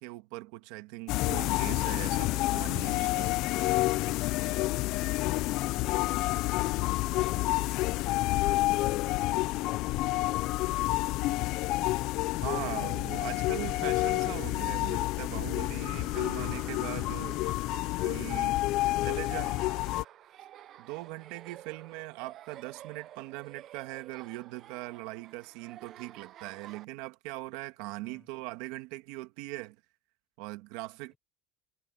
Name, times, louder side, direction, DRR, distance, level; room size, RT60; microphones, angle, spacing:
voice 1, 0.0-3.3 12.4-17.4 18.0-18.6 19.0-19.5 20.8-29.8 30.4-31.1, right 20 dB, 65° right, 1.8 m, -40 dB
sound 1, 1.1-20.0, left 19 dB, 50° left, 0.4 m, -29 dB
Laughter, 15.9-26.8, right 12 dB, 35° right, 0.6 m, -51 dB
voice 2, 18.6-20.0 28.0-28.3, left 5 dB, 15° left, 5.4 m, -56 dB
cardioid pair, 170°, 0 cm